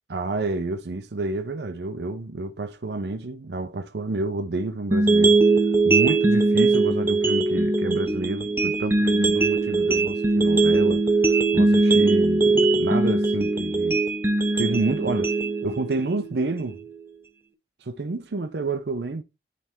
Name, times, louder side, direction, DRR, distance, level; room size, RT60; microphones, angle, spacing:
voice 1, 0.1-5.4 5.8-14.0 14.6-15.4 15.6-16.8 17.8-19.2, right 3 dB, 70° right, 0.6 m, -29 dB
sound 1, 4.9-16.9, right 3 dB, 15° right, 0.5 m, -21 dB
9.9 x 3.3 x 3.6 m
head